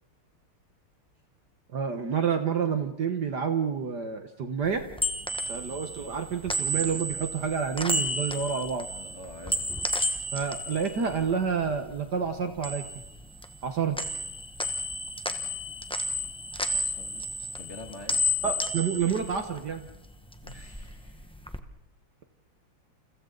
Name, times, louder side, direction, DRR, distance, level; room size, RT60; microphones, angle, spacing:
voice 1, 1.7-4.8 5.5-8.9 10.3-12.8 13.6-14.0 18.4-19.9, right 6 dB, 55° right, 7 dB, 1.8 m, -29 dB
sound 1, 4.7-12.0 12.3-13.7 14.0-20.0 20.3-21.6, equal, 5° left, 0.6 m, -32 dB
voice 2, 8.9-9.7 16.6-17.3 17.6-18.2 20.4-21.3, left 2 dB, 30° left, 3 dB, 2.8 m, -46 dB
29.5 x 29.5 x 4.0 m, 0.85 s
omnidirectional pair, 2.4 m